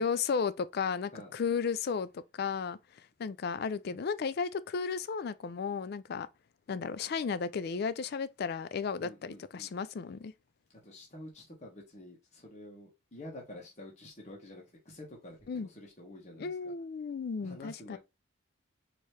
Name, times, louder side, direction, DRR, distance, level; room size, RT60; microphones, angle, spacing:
voice 1, 0.0-6.3 6.7-10.3 15.5-15.7 16.4-18.0, left 5 dB, 50° left, 0.3 m, -34 dB
voice 2, 9.0-9.8 10.8-15.4 15.6-16.7 17.4-18.0, left 1 dB, 35° left, 1.2 m, -49 dB
4.6 x 2.9 x 3.3 m
head